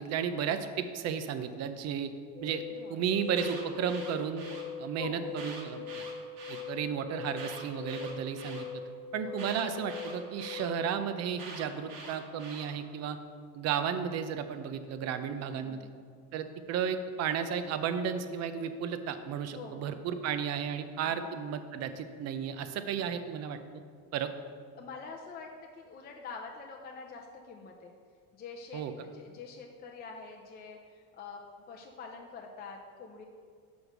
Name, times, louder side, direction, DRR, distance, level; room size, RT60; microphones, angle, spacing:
voice 1, 0.0-2.1 2.4-2.6 2.9-4.4 4.8-6.0 6.5-8.8 9.1-13.2 13.5-15.8 16.3-23.6 24.1-24.3 28.7-28.9, right 7 dB, 45° right, 9 dB, 0.6 m, -33 dB
sound 1, 2.3-10.9, left 5 dB, 10° right, 0.9 m, -42 dB
voice 2, 2.7-3.0 4.9-5.3 9.2-9.4 15.3-15.9 19.5-19.9 21.0-21.2 24.8-27.9 28.3-33.3, left 4 dB, 25° left, 1 dB, 0.5 m, -46 dB
Alarm, 3.2-4.6 5.3-6.6 7.3-8.6 9.4-10.6 11.4-12.7, right 4 dB, 70° right, 1.6 m, -45 dB
6.3 x 5.2 x 6.0 m, 2.1 s
cardioid pair, 145°, 37 cm